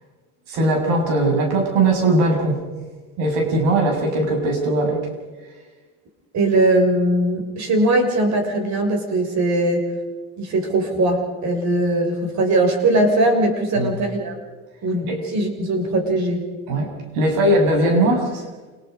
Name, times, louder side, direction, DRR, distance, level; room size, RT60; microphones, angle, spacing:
voice 1, 0.5-2.6 3.2-5.0 13.8-13.9 15.1-15.2 16.7-18.4, right 1 dB, 80° right, 2 dB, 7.0 m, -19 dB
voice 2, 6.3-9.9 10.4-14.3 14.8-16.4, right 1 dB, 55° right, 3 dB, 6.4 m, -20 dB
28.5 x 20.0 x 5.3 m, 1.3 s
supercardioid pair, 95°, 34 cm